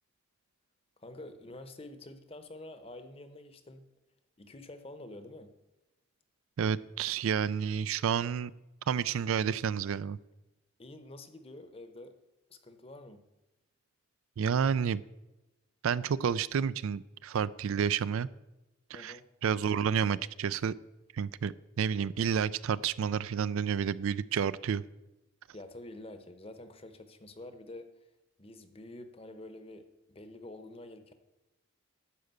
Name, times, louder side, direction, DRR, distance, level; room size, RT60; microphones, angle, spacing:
voice 1, 1.0-3.9 4.4-5.5 10.8-12.2 12.5-13.2 18.9-19.3 25.5-27.9 28.4-31.1, left 1 dB, 25° left, 9 dB, 0.8 m, -48 dB
voice 2, 6.6-8.5 8.9-10.2 14.4-15.0 15.8-18.3 18.9-19.2 19.4-20.7 21.1-24.8, right 7 dB, 70° right, 17 dB, 0.4 m, -30 dB
11.5 x 5.0 x 8.0 m, 1.0 s
head